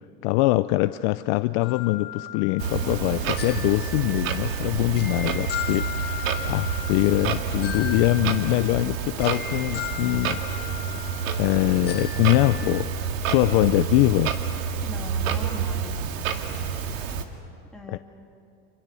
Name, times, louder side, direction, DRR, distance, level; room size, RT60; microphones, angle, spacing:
voice 1, 0.2-10.4 11.4-14.3 17.9-18.0, left 19 dB, 50° left, 13 dB, 0.6 m, -23 dB
sound 1, 1.6-12.8, left 9 dB, 25° left, 1.4 m, -37 dB
voice 2, 2.6-3.3 14.8-16.0 17.7-18.0, left 2 dB, ahead, -2 dB, 3.1 m, -40 dB
Clock, 2.6-17.2, right 7 dB, 90° right, 2.4 m, -29 dB
29.5 x 27.0 x 6.9 m, 2.5 s
supercardioid pair, 145°, 39 cm